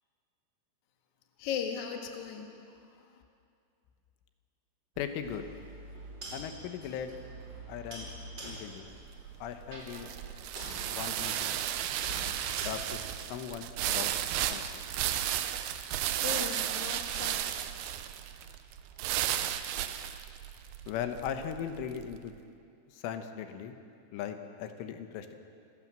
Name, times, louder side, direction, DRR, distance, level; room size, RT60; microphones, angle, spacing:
voice 1, 1.4-2.5 16.2-17.3, left 8 dB, 55° left, 3 dB, 2.3 m, -37 dB
sound 1, 4.9-14.1 14.6-19.5, right 1 dB, 25° right, 3.4 m, -47 dB
voice 2, 5.0-5.5 6.3-7.1 7.7-8.1 8.4-8.9 9.4-10.1 10.9-11.6 12.7-14.2 14.5-14.8 20.9-22.3 22.9-23.8 24.1-25.4, left 8 dB, 85° left, 8 dB, 3.7 m, -38 dB
sound 2, 8.9-22.2, right 11 dB, 85° right, 2.1 m, -34 dB
27.5 x 16.0 x 7.6 m, 2.4 s
omnidirectional pair, 5.5 m